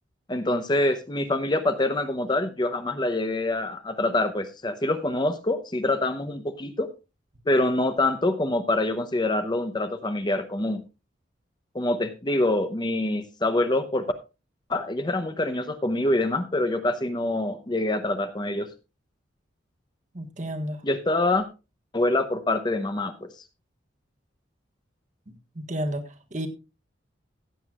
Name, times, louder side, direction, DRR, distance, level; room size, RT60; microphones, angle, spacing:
voice 1, 0.3-6.9 7.5-10.8 11.7-14.1 14.7-18.7 20.8-21.5 21.9-23.3, left 2 dB, 25° left, 0.7 m, -25 dB
voice 2, 20.1-20.8 25.3-26.5, equal, 40° right, 1.4 m, -32 dB
15.5 x 9.2 x 2.4 m
head